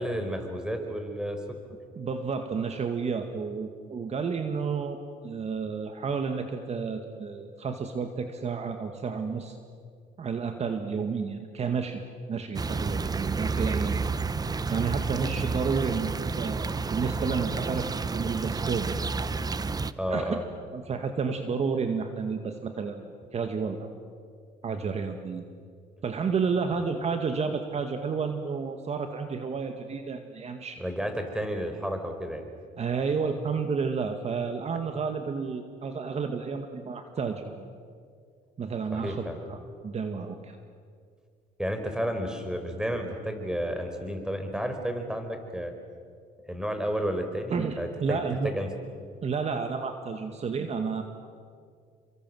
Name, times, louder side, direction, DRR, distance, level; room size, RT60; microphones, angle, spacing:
voice 1, 0.0-1.4 20.0-20.4 30.8-32.5 38.9-39.4 41.6-45.7 46.4-48.7, equal, 5° right, 6 dB, 4.7 m, -31 dB
voice 2, 2.0-9.6 10.2-12.0 12.3-14.0 14.7-19.1 20.1-20.4 20.7-23.9 24.6-25.4 26.0-30.8 32.8-37.7 38.6-39.6 39.8-40.6 47.5-48.6 49.2-51.0, right 5 dB, 40° right, 6 dB, 2.1 m, -31 dB
sound 1, 12.5-19.9, right 4 dB, 20° right, 0.9 m, -30 dB
29.5 x 24.5 x 7.8 m, 2.2 s
cardioid pair, 110°, 17 cm